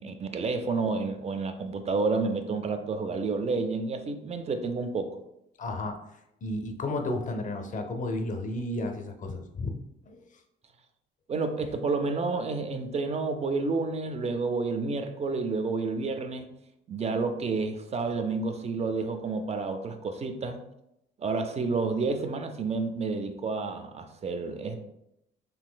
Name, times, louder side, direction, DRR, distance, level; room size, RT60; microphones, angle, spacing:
voice 1, 0.0-5.1 11.3-16.5 16.9-20.6 21.2-24.8, right 4 dB, 35° right, 7 dB, 0.4 m, -30 dB
voice 2, 5.6-9.8 10.0-10.4, left 2 dB, 40° left, 6 dB, 0.5 m, -33 dB
3.8 x 2.5 x 2.2 m, 0.83 s
cardioid pair, 90°, 20 cm